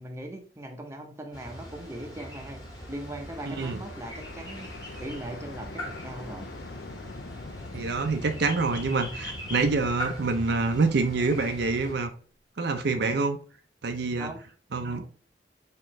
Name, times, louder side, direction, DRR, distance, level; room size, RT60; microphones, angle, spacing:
voice 1, 0.0-4.7 5.0-6.5 14.2-14.4, right 1 dB, 15° right, 3 dB, 0.7 m, -40 dB
sound 1, 1.3-11.9, equal, 20° left, 1.6 m, -41 dB
sound 2, 2.1-12.1, left 3 dB, 65° left, 0.6 m, -45 dB
voice 2, 3.5-3.8 7.7-12.1 12.6-13.4 13.8-14.3 14.7-15.0, right 3 dB, 65° right, 7 dB, 0.6 m, -26 dB
4.4 x 3.7 x 3.0 m, 0.41 s
head